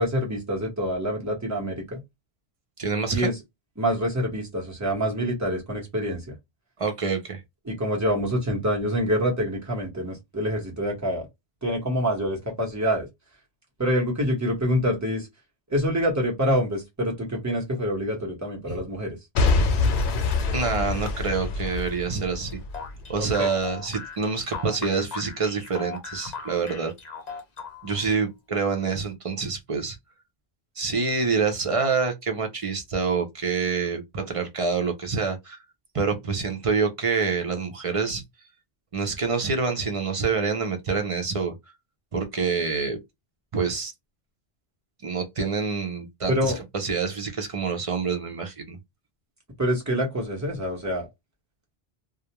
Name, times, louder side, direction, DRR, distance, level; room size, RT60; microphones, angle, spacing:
voice 1, 0.0-2.0 3.1-3.4 3.8-6.4 7.6-11.3 11.6-13.1 13.8-15.3 15.7-19.2 23.2-23.5 46.3-46.6 49.6-51.1, equal, 15° right, 1.0 m, -26 dB
voice 2, 2.8-3.3 6.8-7.4 18.7-18.8 20.5-22.5 23.1-26.9 27.8-30.0 30.8-35.6 35.9-38.2 38.9-41.5 42.1-43.0 43.5-43.9 45.0-48.8, right 4 dB, 40° right, 0.6 m, -26 dB
Boom / Shatter / Crushing, 19.3-23.4 23.9-24.0, left 3 dB, 85° left, 0.9 m, -25 dB
sound 1, 22.7-28.1, left 5 dB, 45° left, 0.8 m, -38 dB
2.4 x 2.1 x 2.9 m
omnidirectional pair, 1.1 m